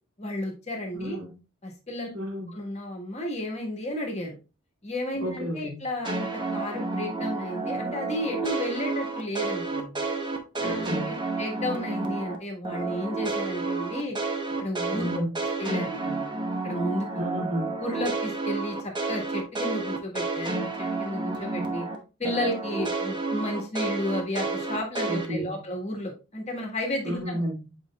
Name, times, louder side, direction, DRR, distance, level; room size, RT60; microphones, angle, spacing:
voice 1, 0.2-1.2 1.6-2.1 2.5-4.4 4.8-10.0 10.5-10.9 11.4-14.2 14.6-15.0 15.6-16.3 16.6-17.1 17.8-21.9 22.2-27.5, left 1 dB, 30° left, 1.5 m, -32 dB
voice 2, 0.9-1.4 2.1-2.5 5.2-5.9 10.6-11.2 14.9-15.3 17.2-17.7 25.1-25.6 27.0-27.8, equal, 65° right, 2.6 m, -32 dB
sound 1, 6.0-12.4 12.6-22.0 22.2-25.3, right 3 dB, 20° right, 0.9 m, -30 dB
8.1 x 5.1 x 2.3 m
head